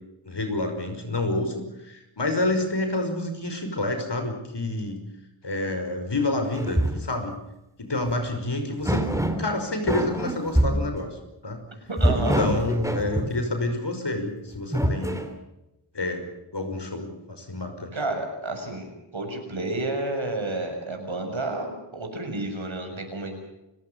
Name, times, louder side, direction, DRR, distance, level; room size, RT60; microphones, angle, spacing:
voice 1, 0.3-5.0 5.4-7.3 7.8-9.1 9.4-11.2 11.4-11.6 12.1-15.3 15.9-16.3 16.5-17.9, left 2 dB, 55° left, 6 dB, 5.7 m, -28 dB
sound 1, 6.5-7.1 8.1-8.2 8.8-9.5 9.9-10.9 12.0-13.4 14.5-15.3, right 1 dB, 5° right, 3.0 m, -25 dB
voice 2, 11.9-12.4 17.9-18.9 19.1-23.4, right 2 dB, 70° right, 4 dB, 6.8 m, -30 dB
29.5 x 17.0 x 7.2 m, 0.93 s
wide cardioid pair, 70°, 49 cm